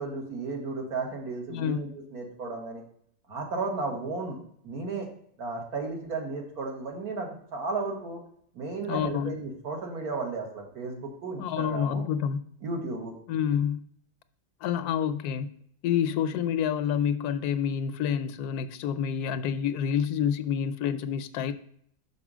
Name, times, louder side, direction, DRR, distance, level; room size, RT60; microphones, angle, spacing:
voice 1, 0.0-2.8 3.3-4.4 4.6-5.1 5.4-8.2 8.6-12.0 12.6-13.2, right 3 dB, 80° right, 1 dB, 1.9 m, -34 dB
voice 2, 1.5-1.9 8.9-9.4 11.4-12.4 13.3-13.8 14.6-15.5 15.8-21.5, left 8 dB, 90° left, 12 dB, 1.1 m, -28 dB
6.2 x 4.1 x 6.1 m, 0.65 s
omnidirectional pair, 1.6 m